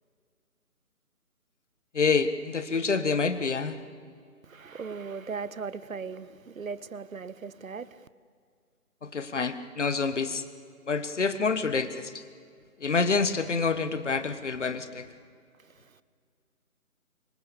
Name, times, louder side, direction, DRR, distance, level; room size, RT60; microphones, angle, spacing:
voice 1, 1.9-3.8 9.0-10.4 10.9-12.2 12.8-15.1, left 4 dB, 50° left, 1.6 m, -27 dB
voice 2, 4.4-8.0 15.6-16.0, right 5 dB, 60° right, 1.1 m, -38 dB
25.0 x 25.0 x 7.0 m
figure-of-eight pair, 170°, 45 cm